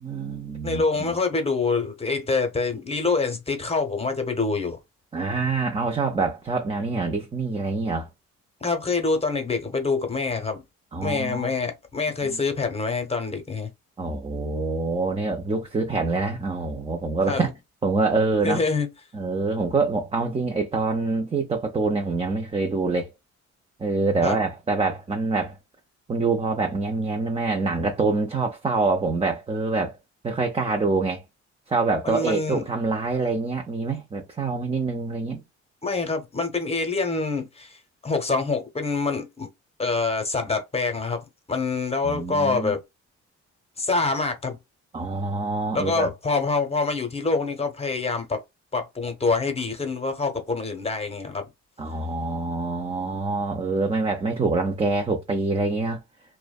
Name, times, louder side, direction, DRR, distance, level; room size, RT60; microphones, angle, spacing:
voice 1, 0.0-1.1 5.1-8.1 10.9-11.5 12.2-12.4 14.0-17.5 17.8-18.6 19.1-23.1 23.8-25.6 26.1-30.0 30.2-31.2 31.7-35.4 42.0-42.8 44.9-46.1 51.8-56.0, right 3 dB, 20° right, 0.5 m, -25 dB
voice 2, 0.6-4.8 8.6-10.6 11.0-13.7 17.3-17.5 18.4-18.9 24.2-24.4 32.0-32.6 35.8-39.5 39.8-42.8 43.8-44.6 45.7-48.4 48.7-51.4, left 4 dB, 20° left, 0.9 m, -26 dB
2.5 x 2.1 x 2.3 m
cardioid pair, 90°, 30 cm